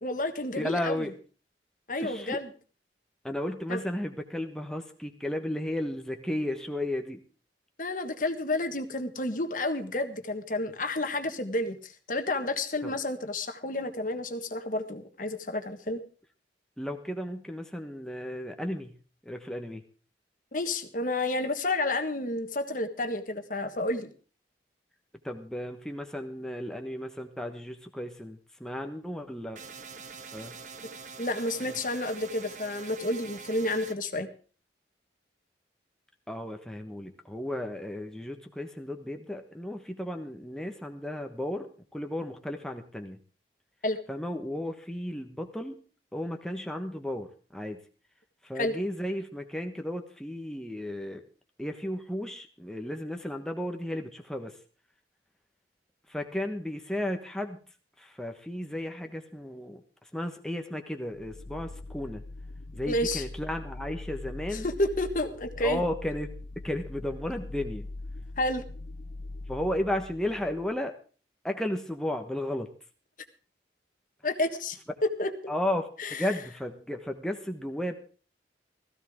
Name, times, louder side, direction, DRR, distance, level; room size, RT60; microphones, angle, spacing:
voice 1, 0.0-1.0 1.9-2.5 3.7-3.8 7.8-16.0 20.5-24.1 31.2-34.3 43.8-44.0 48.6-48.7 62.9-63.2 64.5-65.8 68.4-68.6 74.2-74.8 75.2-75.3 76.0-76.3, left 2 dB, 45° left, 8 dB, 1.5 m, -30 dB
voice 2, 0.6-1.1 2.0-2.4 3.2-7.2 12.8-12.9 16.8-18.9 19.2-19.8 25.2-29.6 30.3-30.5 31.6-31.7 36.3-43.2 44.1-45.7 46.1-47.3 47.5-47.8 48.4-51.2 51.6-54.6 56.1-57.6 58.0-59.8 60.1-62.2 62.7-64.7 65.6-66.3 66.6-67.9 69.5-71.0 71.4-72.7 75.5-78.0, left 1 dB, 5° left, 4 dB, 1.2 m, -34 dB
sound 1, 29.6-34.0, right 5 dB, 45° right, 1.2 m, -44 dB
sound 2, 61.1-70.7, left 2 dB, 65° left, 0.6 m, -42 dB
16.5 x 15.5 x 3.6 m, 0.39 s
head